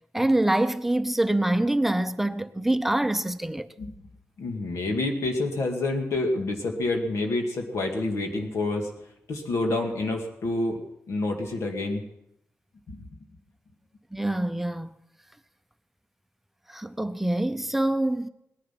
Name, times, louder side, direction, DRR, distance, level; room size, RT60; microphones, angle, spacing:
voice 1, 0.1-3.7 14.1-14.9 16.7-18.3, right 1 dB, 5° right, 0.6 m, -25 dB
voice 2, 4.4-8.9 9.3-10.8 11.1-12.0 12.9-13.1, left 2 dB, 80° left, 2.2 m, -28 dB
19.0 x 10.5 x 5.9 m
wide cardioid pair, 155°, 5 cm